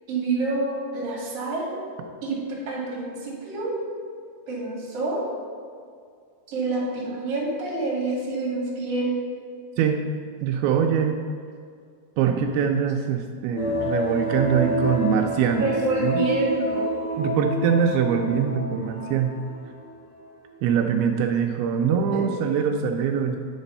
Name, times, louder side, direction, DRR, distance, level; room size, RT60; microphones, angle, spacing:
voice 1, 0.1-1.7 2.2-3.7 4.5-5.2 6.5-9.1 15.6-16.9 22.1-22.2, right 2 dB, 45° right, -4 dB, 2.6 m, -27 dB
voice 2, 10.4-11.2 12.2-15.7 16.0-16.2 17.2-19.4 20.6-23.4, right 7 dB, 85° right, 3 dB, 2.5 m, -23 dB
sound 1, 13.6-19.8 20.1-20.2, equal, 65° left, 2.5 m, -28 dB
9.6 x 4.1 x 5.4 m, 2.2 s
omnidirectional pair, 4.4 m